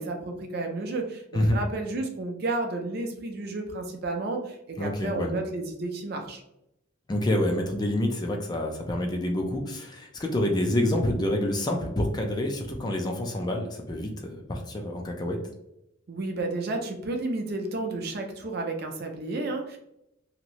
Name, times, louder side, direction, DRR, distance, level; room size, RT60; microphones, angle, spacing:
voice 1, 0.0-6.4 16.1-19.8, right 2 dB, 55° right, 3 dB, 0.5 m, -32 dB
voice 2, 4.8-5.3 7.1-15.4, left 1 dB, 20° left, 1 dB, 0.4 m, -27 dB
3.0 x 2.8 x 2.6 m, 0.82 s
head